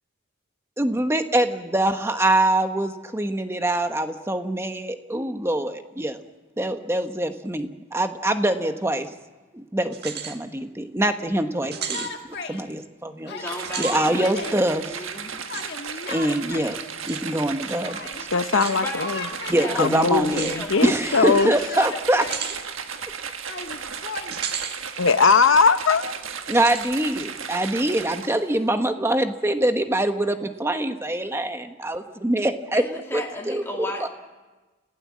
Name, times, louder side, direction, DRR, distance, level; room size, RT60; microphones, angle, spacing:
voice 1, 0.8-6.2 6.6-9.1 9.5-13.5 13.8-15.0 16.1-16.8 17.0-18.0 19.5-20.5 20.8-22.3 26.5-32.8 33.1-34.1, right 1 dB, 15° right, 1.1 m, -24 dB
sound 1, 9.9-10.4 10.8-10.9 11.7-12.1 13.6-14.0 15.5-15.7 17.1-17.2 18.5-18.8 20.3-20.6 22.2-22.6 24.3-24.8 25.2-25.3 26.5-26.9, right 8 dB, 55° right, 1.7 m, -32 dB
Yell, 11.6-12.6 13.3-14.6 15.5-16.8 17.8-18.3 18.6-19.9 21.1-22.6 23.5-24.3, left 4 dB, 55° left, 1.8 m, -36 dB
voice 2, 13.3-14.6 14.8-15.4 18.7-20.9 32.7-34.1, left 2 dB, 10° left, 2.5 m, -35 dB
sound 2, 13.5-28.6, right 6 dB, 85° right, 1.5 m, -35 dB
voice 3, 18.3-19.2 19.8-21.5 25.0-26.1, left 4 dB, 80° left, 0.9 m, -20 dB
30.0 x 16.0 x 7.5 m
head